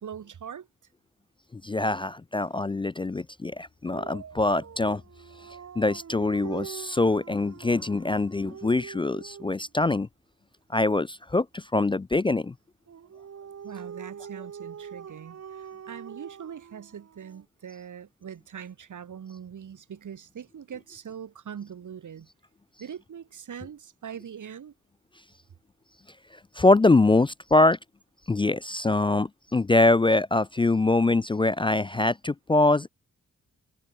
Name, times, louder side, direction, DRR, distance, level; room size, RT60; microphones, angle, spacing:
voice 1, 0.0-0.7 13.6-22.3 22.8-24.7, right 8 dB, 90° right, 4.5 m, -42 dB
voice 2, 1.6-5.0 5.8-10.1 10.7-12.5 26.6-27.8 28.3-32.9, left 2 dB, 20° left, 0.3 m, -23 dB
Dog, 3.9-9.7 12.9-17.4, right 7 dB, 60° right, 1.4 m, -44 dB
wide cardioid pair, 145°, 30 cm